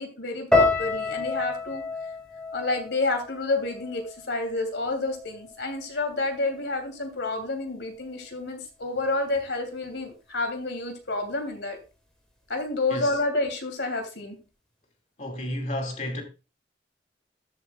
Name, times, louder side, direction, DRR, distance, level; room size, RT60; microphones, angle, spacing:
voice 1, 0.0-1.8 2.5-11.8 12.5-14.4, left 2 dB, 80° left, 2.9 m, -29 dB
sound 1, 0.5-4.7 5.0-5.8 6.3-6.6, left 3 dB, 5° left, 2.2 m, -29 dB
voice 2, 15.2-16.2, left 1 dB, 40° left, 2.3 m, -31 dB
13.5 x 8.0 x 2.4 m
head